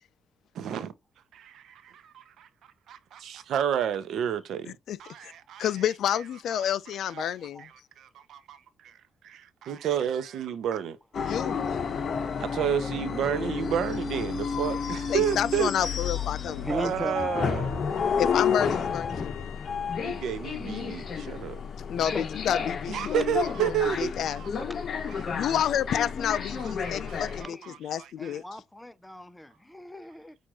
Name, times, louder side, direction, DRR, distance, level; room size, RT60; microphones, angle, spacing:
voice 1, 0.5-0.9 1.3-2.5 2.9-4.7 5.0-5.7 6.6-6.7 7.1-7.3 8.3-8.6 8.8-8.9 9.2-11.0 12.4-15.7 16.5-17.8 20.0-21.6 22.9-24.5 25.1-25.2 26.6-28.3, right 9 dB, 75° right, 0.7 m, -31 dB
voice 2, 4.7-5.3 5.6-7.6 11.2-11.8 15.1-16.9 18.2-19.6 21.9-24.5 25.3-28.4, left 9 dB, 70° left, 0.4 m, -30 dB
sound 1, 11.1-27.4, left 6 dB, 50° left, 0.9 m, -31 dB
voice 3, 16.6-18.0 21.9-22.3 23.1-23.6 24.5-26.0 27.4-27.7 28.2-30.4, equal, 10° left, 0.5 m, -39 dB
6.2 x 2.5 x 3.0 m
cardioid pair, 90°, 0 cm